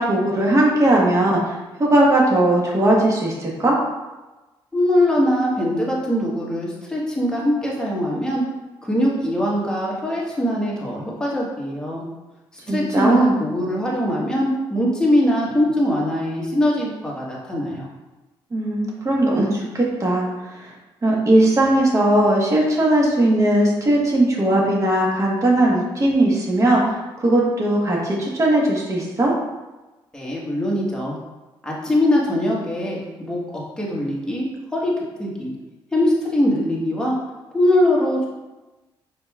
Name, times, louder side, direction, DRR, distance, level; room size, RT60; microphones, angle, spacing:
voice 1, 0.0-3.8 12.7-13.4 18.5-20.7 21.0-26.8 27.2-29.3, right 1 dB, 35° right, -2 dB, 1.2 m, -18 dB
voice 2, 4.7-8.4 8.8-12.0 12.7-17.8 30.1-31.2 31.6-34.9 35.2-35.5 35.9-37.2 37.5-38.3, left 1 dB, 10° left, -5 dB, 1.3 m, -22 dB
5.3 x 4.1 x 2.3 m, 1.1 s
cardioid pair, 95°, 10 cm